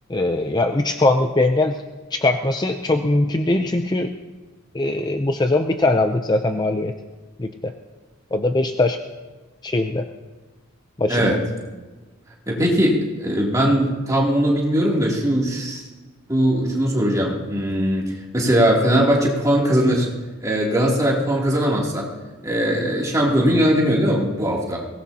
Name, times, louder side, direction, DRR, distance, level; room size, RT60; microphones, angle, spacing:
voice 1, 0.1-1.8 2.1-4.1 4.7-6.9 7.4-7.7 8.3-9.0 9.6-10.0 11.0-11.3, left 2 dB, 20° left, 6 dB, 0.5 m, -21 dB
voice 2, 12.5-15.8 16.3-20.1 20.4-22.1 22.4-24.9, equal, 15° right, -4 dB, 2.8 m, -20 dB
22.5 x 18.0 x 2.9 m, 1.2 s
head